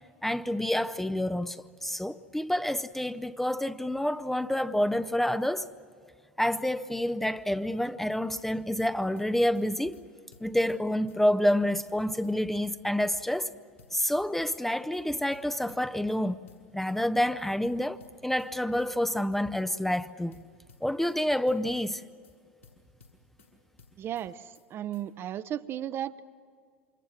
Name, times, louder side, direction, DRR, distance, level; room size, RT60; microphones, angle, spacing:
voice 1, 0.2-5.7 6.4-10.0 10.4-13.5 13.9-16.4 16.7-20.4 20.8-22.0, left 1 dB, 5° left, 0.6 m, -28 dB
sound 1, 8.1-8.5 8.8-9.3 9.5-9.7 9.9-10.0 10.3-11.2 11.5-12.0 12.2-12.4 12.6-13.5 13.8-14.3 14.5-14.7 14.9-15.0 15.3-16.2 16.5-17.0 17.2-17.4 17.6-18.5 18.8-19.3 19.5-19.7 19.9-20.0 20.3-21.2 21.5-22.0 22.2-22.4 22.6-23.5 23.8-24.3 24.5-24.7 24.9-25.0, left 4 dB, 85° left, 6.8 m, -57 dB
voice 2, 24.0-24.4 24.7-26.2, right 11 dB, 35° right, 0.7 m, -34 dB
28.5 x 26.0 x 6.4 m
figure-of-eight pair, 75°, 7 cm